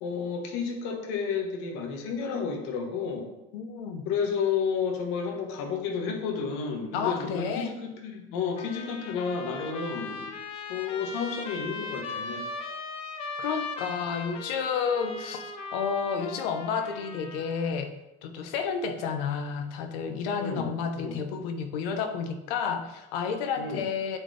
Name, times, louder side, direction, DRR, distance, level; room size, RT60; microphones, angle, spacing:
voice 1, 0.0-3.3 4.0-10.3 10.7-12.4 20.4-21.2 23.6-23.8, left 6 dB, 55° left, 2 dB, 1.4 m, -31 dB
voice 2, 3.5-4.1 6.9-7.7 13.4-15.4 15.7-17.9 18.2-24.2, left 6 dB, 70° left, 6 dB, 1.0 m, -31 dB
Trumpet, 8.6-17.8, left 3 dB, 20° left, 0.3 m, -38 dB
8.6 x 4.3 x 3.4 m, 0.92 s
cardioid pair, 180°, 30 cm